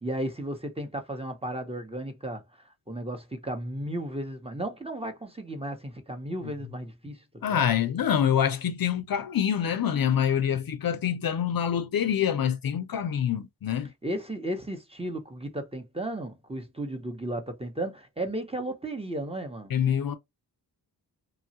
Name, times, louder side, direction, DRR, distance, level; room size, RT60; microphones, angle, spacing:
voice 1, 0.0-7.7 14.0-19.7, right 1 dB, 15° right, 0.8 m, -34 dB
voice 2, 7.4-13.9 19.7-20.2, left 9 dB, 55° left, 0.5 m, -26 dB
3.0 x 2.3 x 2.7 m
cardioid pair, 55°, 42 cm